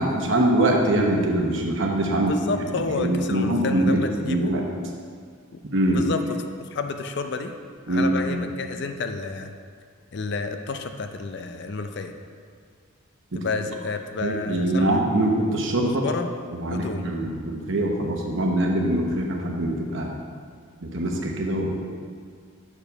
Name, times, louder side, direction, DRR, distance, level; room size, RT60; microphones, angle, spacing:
voice 1, 0.0-2.3 2.8-4.0 4.3-4.7 5.7-6.0 7.9-8.4 13.3-13.4 14.2-16.0 16.6-20.1 20.8-21.8, right 1 dB, 60° right, 0 dB, 1.0 m, -23 dB
voice 2, 2.1-4.5 5.9-6.2 6.6-7.5 7.9-9.5 10.1-12.1 13.3-15.0 15.8-16.3 16.7-17.1, left 4 dB, 50° left, 7 dB, 0.4 m, -30 dB
6.8 x 4.7 x 5.5 m, 2.1 s
head